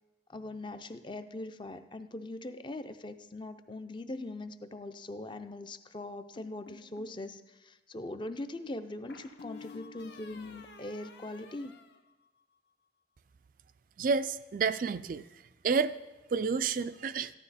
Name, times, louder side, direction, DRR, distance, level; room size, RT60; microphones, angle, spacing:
voice 1, 0.3-11.8, left 2 dB, 25° left, 10 dB, 0.5 m, -41 dB
sound 1, 6.4-7.2 9.1-12.7, left 4 dB, 70° left, 1.1 m, -51 dB
voice 2, 14.0-15.2 15.6-15.9 16.3-17.3, right 5 dB, 45° right, 13 dB, 0.3 m, -29 dB
14.0 x 12.0 x 4.1 m, 1.1 s
head